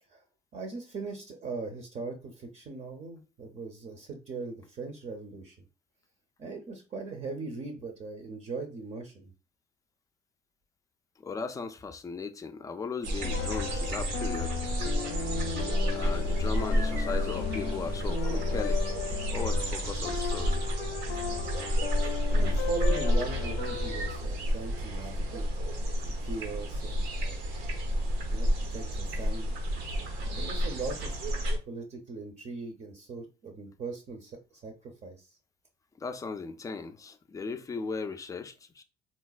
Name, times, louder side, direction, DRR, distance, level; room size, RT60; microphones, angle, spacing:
voice 1, 0.5-5.6 6.4-9.3 22.0-25.5 26.2-27.4 28.3-29.7 30.2-31.2 31.7-35.4, right 4 dB, 45° right, 0.6 m, -39 dB
voice 2, 11.2-14.6 15.9-18.8 19.3-20.6 36.0-38.8, left 4 dB, 20° left, 0.3 m, -37 dB
sound 1, 13.0-31.6, equal, 90° right, 0.8 m, -30 dB
sound 2, 13.2-24.2, left 7 dB, 75° left, 0.5 m, -36 dB
3.9 x 2.1 x 2.2 m
cardioid pair, 110°, 17 cm